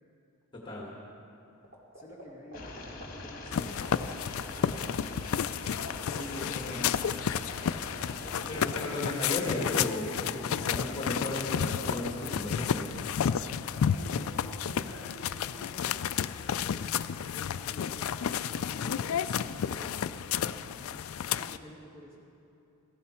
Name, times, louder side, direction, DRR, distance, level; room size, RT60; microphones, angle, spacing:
voice 1, 0.5-0.9 6.1-6.9 8.5-13.1, left 1 dB, 20° left, -3 dB, 1.7 m, -35 dB
sound 1, 1.6-15.0, right 1 dB, 40° right, 2.6 m, -47 dB
voice 2, 1.9-4.7 6.4-6.8 8.0-9.0 13.8-20.1 20.4-22.2, equal, 10° right, -4 dB, 2.2 m, -51 dB
sound 2, 2.5-8.6, left 2 dB, 40° left, 1.6 m, -43 dB
sound 3, 3.5-21.6, left 8 dB, 70° left, 0.4 m, -32 dB
17.0 x 14.5 x 4.4 m, 2.7 s
head